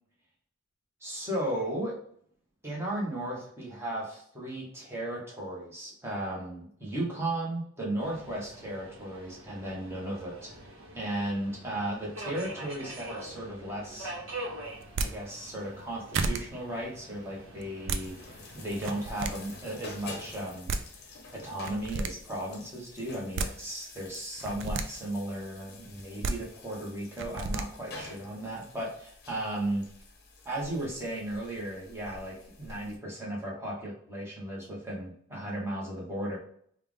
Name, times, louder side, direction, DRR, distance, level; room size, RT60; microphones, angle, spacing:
voice 1, 1.0-2.0 2.6-10.5 10.9-14.1 15.0-20.7 21.3-29.9 30.4-36.4, right 1 dB, 10° right, -5 dB, 1.2 m, -35 dB
Subway metro underground, 8.0-20.6, right 1 dB, 80° right, 1.1 m, -45 dB
sound 1, 14.8-15.1 15.8-15.9 16.1-16.4 17.6-18.0 18.7-19.3 20.4-20.5 20.7-20.8 21.6-22.1 23.1-23.5 24.4-24.8 26.0-26.3 27.2-27.6, right 3 dB, 60° right, 0.4 m, -31 dB
sound 2, 18.0-33.0, left 3 dB, 50° left, 0.7 m, -49 dB
3.4 x 2.4 x 3.5 m, 0.62 s
head